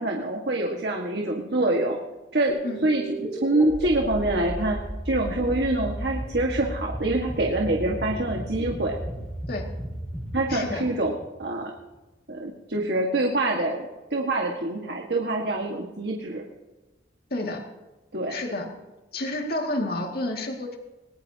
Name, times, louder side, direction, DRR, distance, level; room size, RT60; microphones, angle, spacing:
voice 1, 0.0-2.0 2.3-4.8 5.1-8.9 10.3-11.1 11.4-11.7 12.3-16.4 18.1-18.4, right 2 dB, 60° right, 0 dB, 1.7 m, -25 dB
sound 1, 2.5-11.8, right 1 dB, 10° left, 4.5 m, -35 dB
voice 2, 10.5-10.8 17.3-17.6 18.3-18.7 19.1-20.8, left 1 dB, 55° left, 2 dB, 2.2 m, -30 dB
20.0 x 19.5 x 2.9 m, 1.1 s
head